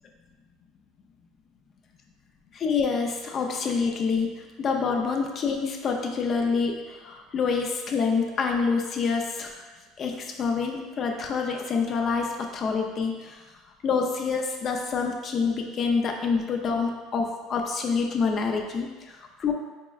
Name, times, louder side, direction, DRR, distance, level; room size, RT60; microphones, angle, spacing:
voice 1, 2.5-9.6 10.0-13.4 13.8-19.5, left 5 dB, 35° left, 2 dB, 0.4 m, -27 dB
4.4 x 3.0 x 2.3 m, 1.2 s
cardioid pair, 150°, 0 cm